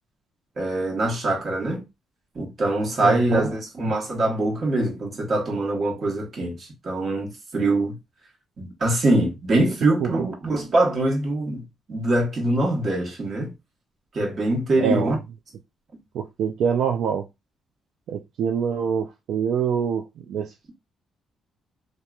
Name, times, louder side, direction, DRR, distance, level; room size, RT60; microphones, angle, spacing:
voice 1, 0.6-1.8 2.3-8.0 8.6-11.6 11.9-13.5 14.1-15.2, right 2 dB, 45° right, 1.1 m, -23 dB
voice 2, 3.0-3.5 10.0-10.1 14.8-15.2 16.1-17.3 18.1-20.7, right 7 dB, 75° right, 0.3 m, -25 dB
2.9 x 2.3 x 2.3 m
cardioid pair, 90°, 0 cm